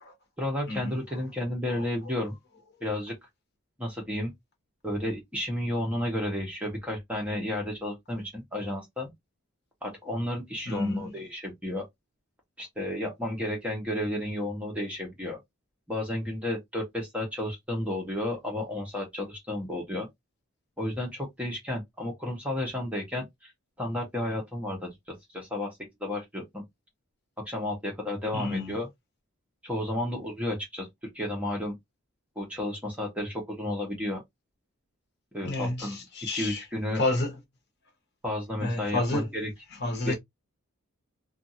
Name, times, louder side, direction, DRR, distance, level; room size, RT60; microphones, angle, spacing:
voice 1, 0.4-2.4 2.8-3.1 3.8-4.3 4.8-9.1 9.8-11.8 12.6-15.4 15.9-20.1 20.8-23.5 23.8-25.7 26.0-26.6 27.5-28.9 29.6-30.9 31.1-31.7 32.4-34.2 35.3-36.0 36.3-37.0 38.2-39.5 40.0-40.1, left 1 dB, 5° right, 0.9 m, -32 dB
voice 2, 10.7-11.1 28.3-28.7 35.4-36.6 37.0-37.3 38.6-39.3 39.8-40.1, left 2 dB, 50° left, 1.0 m, -30 dB
2.6 x 2.5 x 2.7 m
head